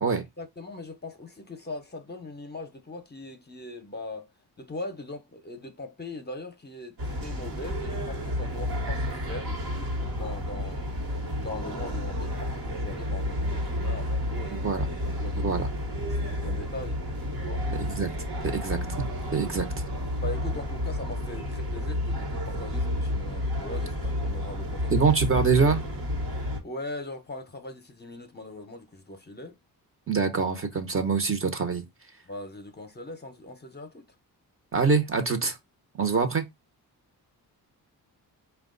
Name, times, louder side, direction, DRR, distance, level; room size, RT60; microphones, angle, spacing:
voice 1, 0.4-4.3 4.6-14.6 15.2-15.7 16.0-17.0 17.4-17.7 20.1-25.1 26.6-29.6 32.3-34.1, left 2 dB, 25° left, 0.7 m, -40 dB
sound 1, 7.0-26.6, left 1 dB, 65° right, 1.2 m, -31 dB
voice 2, 14.5-14.9 15.4-15.7 17.7-18.1 18.4-18.8 19.3-19.7 24.9-25.8 30.1-31.8 34.7-35.6 36.0-36.4, right 5 dB, 35° right, 0.8 m, -24 dB
4.4 x 2.3 x 3.8 m
wide cardioid pair, 130°, 39 cm